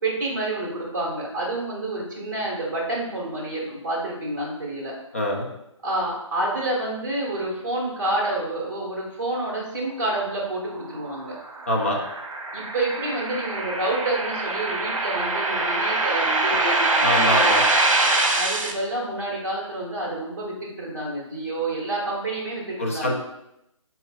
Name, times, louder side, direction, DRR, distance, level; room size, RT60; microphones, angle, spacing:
voice 1, 0.0-4.9 5.8-11.4 12.5-17.5 18.3-23.1, right 2 dB, 35° right, -4 dB, 1.5 m, -28 dB
voice 2, 5.1-5.5 11.7-12.0 16.5-16.6 17.0-17.6 22.8-23.1, left 1 dB, 25° left, -2 dB, 0.5 m, -24 dB
sound 1, 10.9-18.7, right 2 dB, 80° right, 0.8 m, -23 dB
4.6 x 4.2 x 2.3 m, 0.84 s
hypercardioid pair, 175°, 17 cm